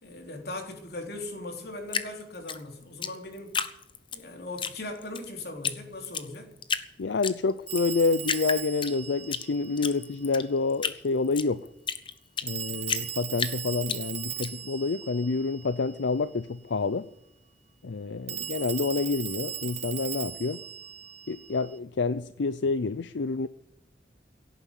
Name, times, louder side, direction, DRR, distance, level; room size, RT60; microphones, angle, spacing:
voice 1, 0.0-3.6 4.1-6.5, left 2 dB, 60° left, 3.7 m, -39 dB
Drip, 1.9-4.2 4.6-5.2 5.6-5.8 6.0-6.9 7.2-7.8 8.2-9.4 9.8-12.5 12.9-14.5, left 6 dB, 25° left, 0.9 m, -31 dB
voice 2, 7.0-11.7 12.4-17.1 17.8-20.6 21.3-23.5, left 4 dB, 80° left, 0.6 m, -28 dB
Telephone, 7.7-10.3 12.5-16.1 18.3-21.8, right 10 dB, 35° right, 0.8 m, -38 dB
17.0 x 9.5 x 8.2 m
head